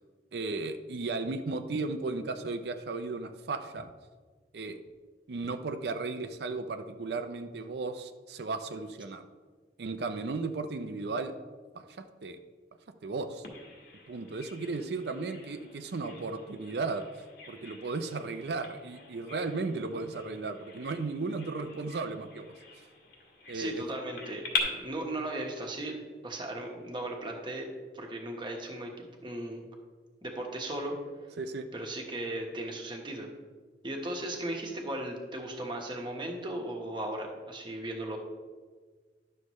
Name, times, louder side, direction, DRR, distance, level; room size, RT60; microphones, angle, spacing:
voice 1, 0.3-3.9 4.5-4.8 5.3-9.2 9.8-11.3 11.7-12.4 13.0-13.4 14.1-17.1 17.5-22.5 23.5-23.8 31.4-31.7, right 3 dB, 60° right, 8 dB, 0.5 m, -35 dB
Bird vocalization bird call bird song, 13.4-24.6, left 5 dB, 55° left, 1.7 m, -43 dB
voice 2, 23.5-25.9 26.2-27.7 27.9-29.6 30.2-30.9 31.7-33.3 33.8-38.2, right 1 dB, 25° right, 1 dB, 1.2 m, -37 dB
11.5 x 6.6 x 3.1 m, 1.5 s
head